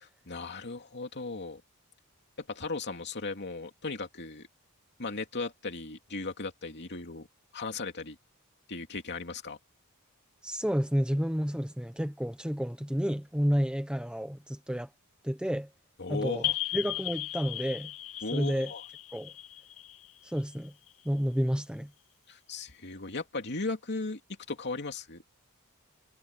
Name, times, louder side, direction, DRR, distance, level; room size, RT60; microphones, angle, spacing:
voice 1, 0.3-1.6 2.4-4.5 5.0-7.3 7.5-8.2 8.7-9.6 16.0-16.5 18.2-18.8 22.3-24.2 24.5-25.2, left 3 dB, 50° left, 2.8 m, -36 dB
voice 2, 10.4-14.9 15.2-15.7 16.1-17.9 18.3-18.7 19.1-19.3 20.2-20.7 21.0-21.9, equal, 5° right, 1.1 m, -30 dB
sound 1, 16.4-20.9, left 13 dB, 70° left, 1.9 m, -36 dB
head